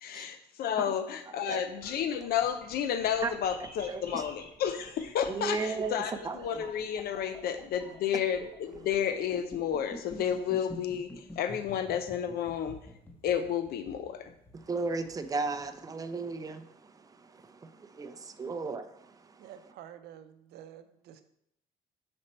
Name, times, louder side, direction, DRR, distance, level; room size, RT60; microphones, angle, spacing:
voice 1, 0.0-12.9 13.2-14.3, left 9 dB, 65° left, 0.5 m, -31 dB
sound 1, 1.6-15.7, left 1 dB, 10° left, 1.2 m, -48 dB
voice 2, 3.9-4.2 5.3-6.7 14.6-19.4, right 4 dB, 20° right, 0.6 m, -35 dB
voice 3, 19.4-21.2, right 10 dB, 75° right, 0.6 m, -49 dB
6.3 x 4.3 x 4.3 m
cardioid pair, 110°, 17 cm